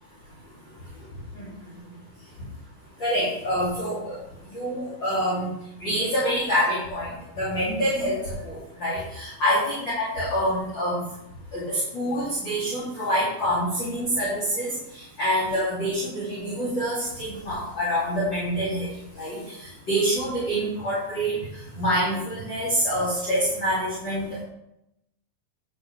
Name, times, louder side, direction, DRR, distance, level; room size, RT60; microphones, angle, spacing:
voice 1, 3.0-4.2 4.5-5.5 5.8-11.0 11.5-18.9 19.2-24.4, equal, 35° left, -9 dB, 3.2 m, -26 dB
10.0 x 8.0 x 3.3 m, 0.84 s
omnidirectional pair, 4.1 m